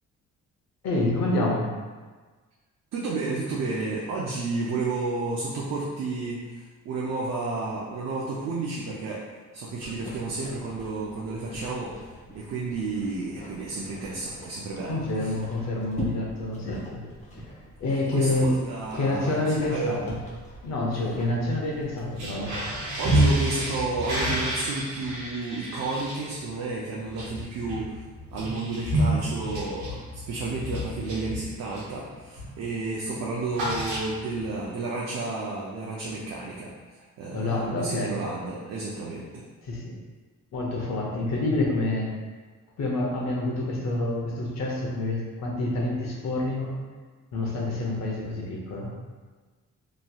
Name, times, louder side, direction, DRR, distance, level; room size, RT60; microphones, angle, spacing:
voice 1, 0.8-1.7 14.9-17.0 17.3-17.4 17.8-18.5 18.9-20.2 20.6-22.6 37.3-38.2 39.6-40.0 40.5-42.1 42.8-46.7 47.3-49.0, left 2 dB, 60° left, -2 dB, 0.7 m, -27 dB
voice 2, 2.9-9.2 9.5-11.9 12.3-15.3 18.1-20.0 23.0-28.0 28.3-39.4, right 3 dB, 60° right, -4 dB, 0.5 m, -31 dB
sound 1, 9.8-23.3, equal, 25° left, 0.8 m, -43 dB
sound 2, 22.1-32.0 32.3-32.6 32.9-34.5, equal, 90° right, 1.0 m, -29 dB
3.0 x 2.6 x 2.2 m, 1.4 s
cardioid pair, 90°, 30 cm